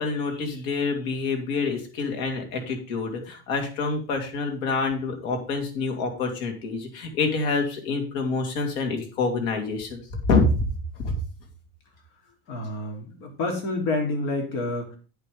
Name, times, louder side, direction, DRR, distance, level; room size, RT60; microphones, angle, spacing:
voice 1, 0.0-10.7 11.0-11.2, left 3 dB, 80° left, 3 dB, 3.0 m, -27 dB
voice 2, 12.5-15.0, left 2 dB, 65° left, 2 dB, 3.5 m, -28 dB
9.1 x 5.7 x 5.3 m, 0.37 s
cardioid pair, 150°, 39 cm